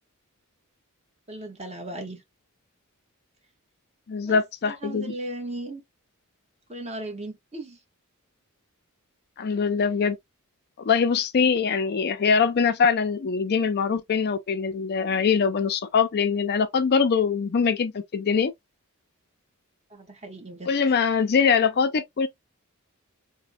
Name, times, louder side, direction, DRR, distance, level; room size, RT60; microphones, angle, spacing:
voice 1, 1.3-2.2 4.2-4.4 4.6-5.8 6.7-7.8 19.9-20.7, right 1 dB, 30° right, 1.0 m, -36 dB
voice 2, 4.1-5.1 9.4-10.2 10.8-18.5 20.7-22.3, left 6 dB, 45° left, 0.4 m, -23 dB
4.1 x 2.1 x 2.5 m
head